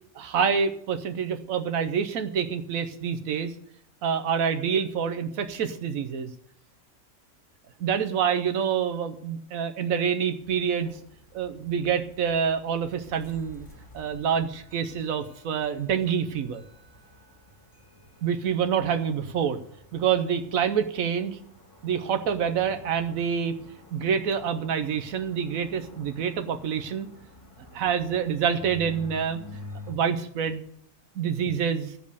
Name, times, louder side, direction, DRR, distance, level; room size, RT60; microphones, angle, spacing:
voice 1, 0.2-3.5 4.0-6.3 7.8-11.0 11.3-13.7 13.9-16.6 18.2-19.6 19.9-21.4 21.8-23.6 23.9-27.1 27.7-29.4 29.9-30.7 31.2-31.9, right 7 dB, 80° right, 7 dB, 1.2 m, -27 dB
sound 1, 10.4-29.9, left 1 dB, 20° left, 1.9 m, -49 dB
15.0 x 5.2 x 6.7 m, 0.71 s
omnidirectional pair, 1.4 m